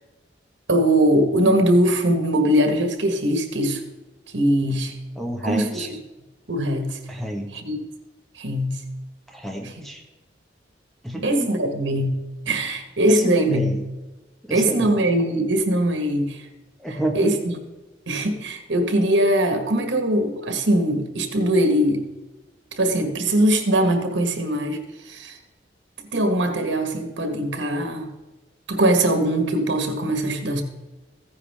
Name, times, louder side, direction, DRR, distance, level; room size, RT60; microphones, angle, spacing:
voice 1, 0.7-3.8 4.3-4.9 5.4-5.9 6.5-7.0 7.5-7.8 8.3-8.8 11.2-13.7 14.5-16.4 17.1-17.5 18.1-22.0 22.8-25.4 26.1-28.1 28.7-30.6, right 1 dB, 85° right, 6 dB, 1.7 m, -21 dB
voice 2, 5.2-5.9 7.1-7.5 9.3-10.0 11.0-11.5 13.1-13.8 14.4-15.0 16.8-17.3, right 1 dB, ahead, 1 dB, 1.6 m, -29 dB
15.0 x 9.7 x 3.6 m, 1.1 s
head